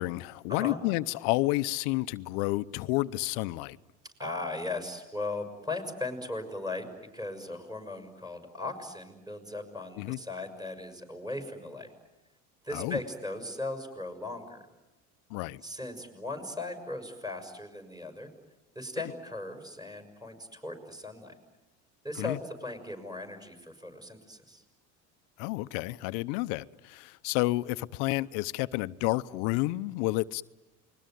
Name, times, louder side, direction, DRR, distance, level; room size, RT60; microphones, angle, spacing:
voice 1, 0.0-3.8 10.0-10.2 12.7-13.0 15.3-15.6 22.2-22.4 25.4-30.4, left 20 dB, 75° left, 0.8 m, -30 dB
voice 2, 4.2-6.9 7.1-11.9 12.6-14.6 15.6-18.3 18.7-21.3 22.0-24.6, left 2 dB, 10° right, 6.5 m, -38 dB
28.5 x 21.5 x 9.3 m
supercardioid pair, 105°, 36 cm